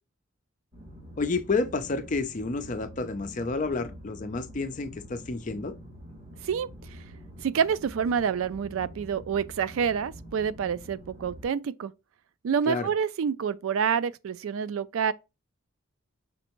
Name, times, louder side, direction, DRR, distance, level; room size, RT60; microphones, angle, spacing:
sound 1, 0.7-11.5, equal, 55° right, 2.8 m, -46 dB
voice 1, 1.2-5.7 12.7-12.9, left 3 dB, 35° left, 0.5 m, -30 dB
voice 2, 7.4-11.9 12.4-15.1, right 7 dB, 75° right, 0.3 m, -27 dB
5.2 x 3.3 x 3.0 m
head